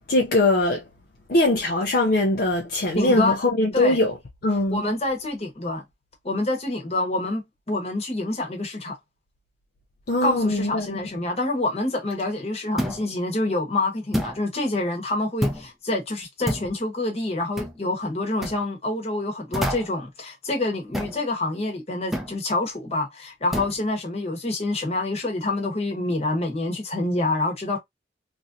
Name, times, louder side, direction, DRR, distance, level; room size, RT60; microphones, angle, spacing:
voice 1, 0.1-0.8 1.3-4.2 4.4-4.8 10.1-11.1, left 2 dB, 55° left, 0.5 m, -21 dB
voice 2, 2.9-3.4 3.7-4.0 4.7-5.8 6.2-9.0 10.2-27.8, left 2 dB, 35° left, 1.0 m, -27 dB
sound 1, 12.8-13.1 14.1-14.4 15.4-15.7 16.5-16.7 17.6-17.8 18.4-18.6 19.5-20.0 20.9-21.2 22.1-22.4 23.5-23.8, equal, ahead, 0.6 m, -28 dB
3.0 x 2.6 x 2.5 m
head